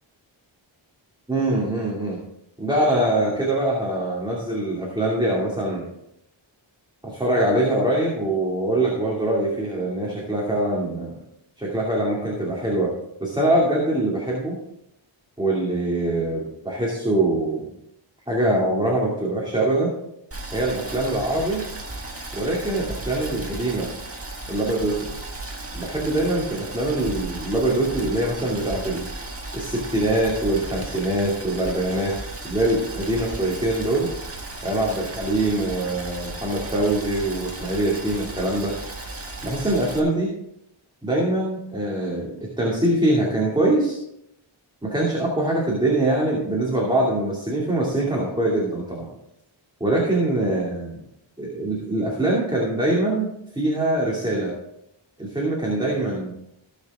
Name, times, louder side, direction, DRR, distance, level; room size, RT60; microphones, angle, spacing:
voice 1, 1.3-2.2 2.6-5.9 7.0-11.2 11.6-12.9 13.2-14.6 15.4-17.7 18.3-19.9 20.5-21.6 22.3-23.9 24.5-25.1 25.7-29.1 29.5-34.1 34.6-38.8 39.4-40.3 41.0-44.0 44.8-49.1 49.8-51.0 51.4-54.5 55.2-56.3, right 1 dB, 10° right, -4 dB, 2.6 m, -23 dB
Boiling, 20.3-40.0, right 2 dB, 30° right, 1.8 m, -35 dB
17.0 x 6.5 x 3.6 m, 0.79 s
wide cardioid pair, 90°, 48 cm